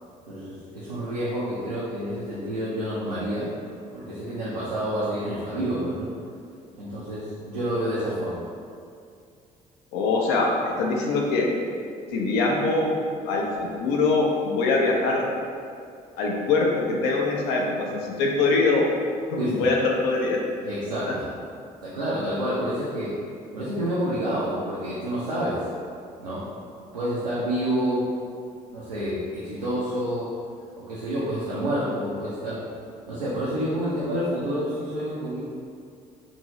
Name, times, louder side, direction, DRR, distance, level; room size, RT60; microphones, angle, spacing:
voice 1, 0.3-3.5 3.9-6.1 6.8-8.5 19.4-19.7 20.6-21.3 21.8-23.2 23.5-25.7 26.2-26.4 26.9-28.1 28.7-30.3 30.8-32.6 33.1-35.4, equal, 85° right, -9 dB, 0.4 m, -28 dB
voice 2, 9.9-10.5 10.8-11.5 12.1-12.9 13.3-15.3 16.2-18.9 19.3-20.4 21.1-21.2, left 3 dB, 60° left, -1 dB, 0.5 m, -23 dB
2.6 x 2.6 x 3.0 m, 2.3 s
figure-of-eight pair, 45°, 20 cm